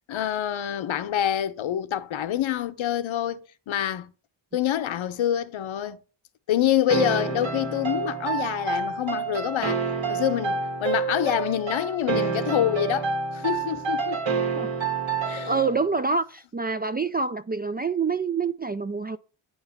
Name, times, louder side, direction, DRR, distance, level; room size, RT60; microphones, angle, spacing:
voice 1, 0.1-4.1 4.5-6.0 6.5-14.3 15.3-15.5, left 11 dB, 70° left, 0.8 m, -26 dB
sound 1, 6.9-15.8, right 5 dB, 65° right, 1.8 m, -28 dB
voice 2, 15.4-19.2, right 4 dB, 20° right, 0.3 m, -26 dB
8.7 x 3.0 x 5.6 m
cardioid pair, 60°, 50 cm